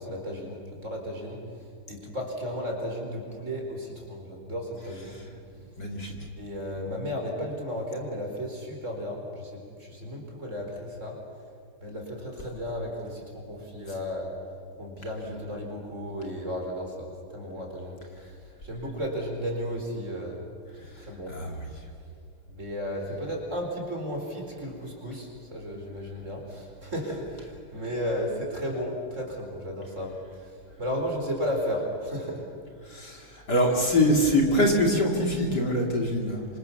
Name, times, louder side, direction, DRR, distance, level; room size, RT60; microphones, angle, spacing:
voice 1, 0.0-1.4 1.9-5.2 6.4-11.2 11.8-14.3 14.8-18.0 18.2-18.3 18.6-20.4 21.0-21.4 22.5-30.1 30.8-32.4, equal, 35° right, 1 dB, 4.9 m, -34 dB
voice 2, 5.8-6.1 21.3-21.7 32.9-36.5, left 1 dB, 50° left, 0 dB, 3.3 m, -24 dB
27.0 x 26.0 x 7.2 m, 2.2 s
omnidirectional pair, 2.4 m